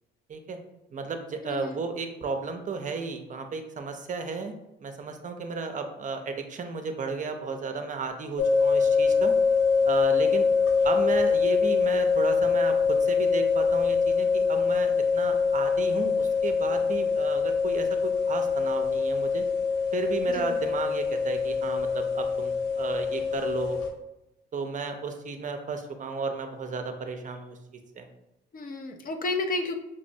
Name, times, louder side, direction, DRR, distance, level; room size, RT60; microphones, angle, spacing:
voice 1, 0.9-4.5 4.8-9.4 9.9-10.5 10.8-19.4 19.9-23.8 24.5-27.5 28.0-28.1, right 4 dB, 40° right, 6 dB, 0.5 m, -33 dB
voice 2, 1.4-1.8 20.3-20.6 28.5-29.8, left 2 dB, 45° left, 4 dB, 0.5 m, -32 dB
sound 1, 8.4-23.9, left 5 dB, 80° left, 0.8 m, -24 dB
5.2 x 2.0 x 2.6 m, 0.91 s
cardioid pair, 90°, 20 cm